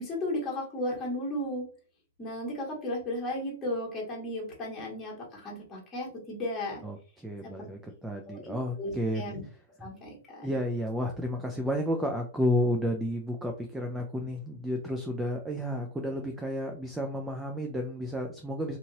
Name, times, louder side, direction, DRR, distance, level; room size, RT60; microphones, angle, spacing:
voice 1, 0.0-1.6 2.2-6.8 7.4-7.7 8.2-9.4 9.8-10.5, left 1 dB, 15° left, -4 dB, 1.4 m, -35 dB
voice 2, 6.8-9.4 10.4-18.8, equal, 5° right, 3 dB, 0.3 m, -31 dB
2.8 x 2.7 x 2.7 m, 0.39 s
hypercardioid pair, 155°, 0 cm